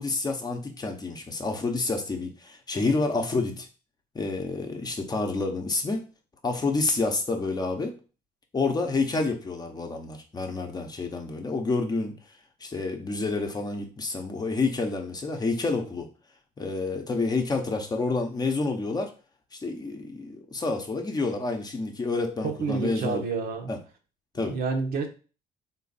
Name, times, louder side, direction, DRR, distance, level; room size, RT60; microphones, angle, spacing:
voice 1, 0.0-3.7 4.1-6.0 6.4-8.0 8.5-12.1 12.6-16.1 16.6-19.1 19.5-23.2 23.7-23.8 24.3-24.6, left 3 dB, 25° left, 3 dB, 0.8 m, -28 dB
voice 2, 22.4-23.7 24.4-25.1, right 4 dB, 65° right, 4 dB, 0.9 m, -29 dB
3.9 x 2.5 x 4.0 m, 0.35 s
cardioid pair, 110°, 17 cm